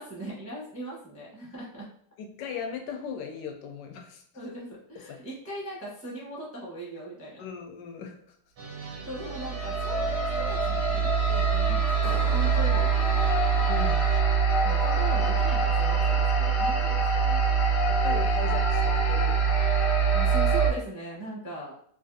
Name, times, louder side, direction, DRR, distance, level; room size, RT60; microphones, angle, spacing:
voice 1, 0.0-1.9 4.3-7.4 9.0-13.2 14.6-17.4 20.1-21.7, right 1 dB, 15° right, -6 dB, 0.4 m, -39 dB
voice 2, 2.2-4.2 7.4-8.2 13.7-14.1 17.9-19.9, left 6 dB, 90° left, 4 dB, 1.3 m, -38 dB
sound 1, 8.6-14.2, right 4 dB, 85° right, 1.5 m, -42 dB
sound 2, 9.2-20.7, right 5 dB, 60° left, 1.0 m, -24 dB
sound 3, 12.0-15.3, right 3 dB, 70° right, 0.6 m, -45 dB
3.3 x 2.4 x 2.6 m, 0.65 s
omnidirectional pair, 1.8 m